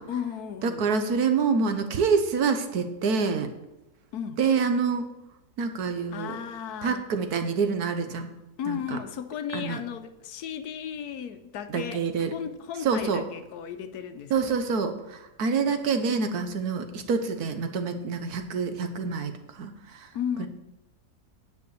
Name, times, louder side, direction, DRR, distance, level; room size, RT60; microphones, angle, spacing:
voice 1, 0.1-0.9 4.1-4.4 6.1-7.1 8.6-14.6 20.1-20.5, left 8 dB, 75° left, 1.2 m, -35 dB
voice 2, 0.6-3.5 4.4-5.1 5.6-6.4 6.8-8.3 8.7-9.0 9.5-9.8 11.7-12.3 12.8-13.2 14.3-20.1 20.4-20.5, right 5 dB, 70° right, 1.4 m, -27 dB
9.4 x 5.1 x 8.1 m
omnidirectional pair, 1.7 m